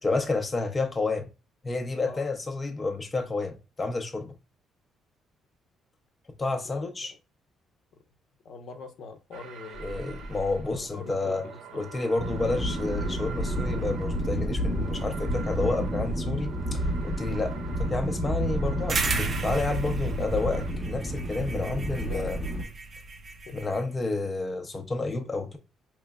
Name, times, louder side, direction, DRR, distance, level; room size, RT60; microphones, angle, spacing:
voice 1, 0.0-1.3 1.6-4.3 6.4-7.1 9.8-11.4 11.7-22.4 23.5-25.6, left 3 dB, 20° left, 0.6 m, -30 dB
voice 2, 8.4-10.2 10.7-11.9 22.0-22.3 22.7-22.8 23.5-23.6, left 4 dB, 60° left, 0.8 m, -43 dB
sound 1, 9.3-20.7, right 6 dB, 80° right, 0.8 m, -45 dB
sound 2, 12.2-22.7, equal, 5° right, 0.9 m, -30 dB
sound 3, 18.9-23.8, right 3 dB, 30° right, 0.6 m, -33 dB
4.8 x 3.1 x 2.2 m
cardioid pair, 150°, 0 cm